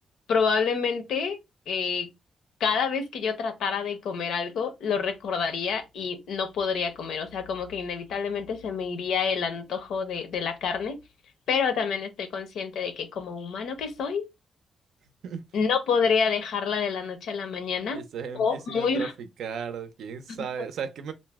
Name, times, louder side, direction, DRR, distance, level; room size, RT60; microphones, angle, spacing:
voice 1, 0.3-1.4 1.7-2.1 2.6-11.0 11.5-14.3 15.5-18.0 18.3-19.1 20.3-20.4, left 6 dB, 90° left, 0.6 m, -28 dB
voice 2, 17.9-19.1 19.4-21.1, right 6 dB, 80° right, 0.5 m, -35 dB
2.6 x 2.0 x 3.4 m
wide cardioid pair, 145°, 0 cm